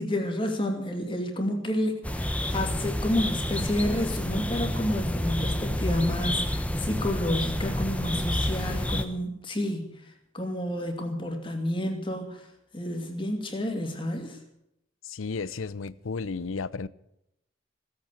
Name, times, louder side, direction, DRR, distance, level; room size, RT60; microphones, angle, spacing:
voice 1, 0.0-2.2 2.5-12.5 12.7-14.4, left 1 dB, 25° left, 2.5 m, -30 dB
sound 1, 2.0-9.0, left 1 dB, 5° left, 1.0 m, -29 dB
voice 2, 15.0-16.9, left 4 dB, 90° left, 0.6 m, -33 dB
16.5 x 8.7 x 8.5 m
head